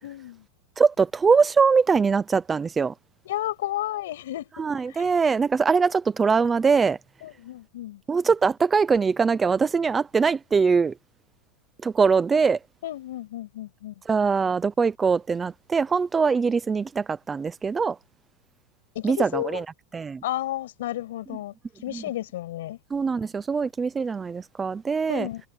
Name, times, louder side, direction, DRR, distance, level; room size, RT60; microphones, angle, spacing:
voice 1, 0.0-0.4 3.3-4.5 7.2-8.0 12.8-13.9 18.9-19.6 20.2-21.5 21.8-22.8 25.1-25.4, left 14 dB, 75° left, 6.4 m, -32 dB
voice 2, 0.8-2.9 4.6-7.0 8.1-11.0 11.8-12.6 14.1-18.0 19.0-19.7 19.9-20.2 21.9-22.0 22.9-25.3, right 5 dB, 10° right, 0.5 m, -22 dB
supercardioid pair, 170°, 0 cm